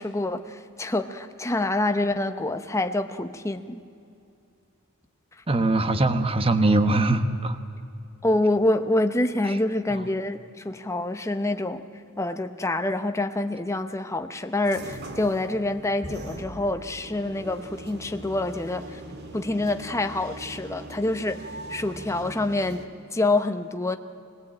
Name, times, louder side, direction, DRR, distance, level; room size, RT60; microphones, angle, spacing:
voice 1, 0.0-3.8 8.2-11.8 12.2-19.0 19.3-24.0, left 2 dB, 15° left, 8 dB, 0.9 m, -26 dB
voice 2, 5.5-7.6, right 2 dB, 25° right, 9 dB, 1.1 m, -21 dB
sound 1, 14.6-22.9, right 1 dB, 50° right, 2.0 m, -40 dB
24.5 x 20.0 x 8.8 m, 2.5 s
head